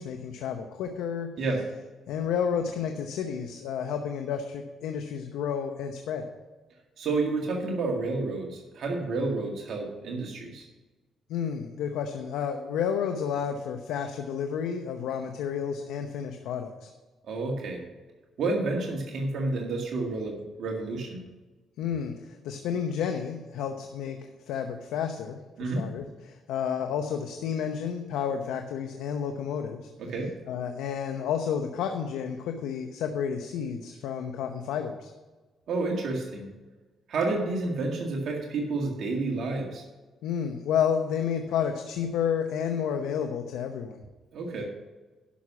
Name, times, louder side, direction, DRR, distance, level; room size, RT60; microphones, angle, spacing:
voice 1, 0.0-1.3 2.1-6.2 11.3-16.9 21.8-24.2 24.5-29.8 30.5-35.1 40.2-44.0, left 7 dB, 90° left, 5 dB, 0.8 m, -31 dB
voice 2, 7.0-10.6 17.2-17.8 18.4-21.2 25.6-25.8 30.0-30.3 35.7-36.5 37.1-39.8 44.3-44.6, right 3 dB, 65° right, 0 dB, 2.0 m, -30 dB
11.5 x 6.2 x 6.1 m, 1.2 s
cardioid pair, 90°, 0 cm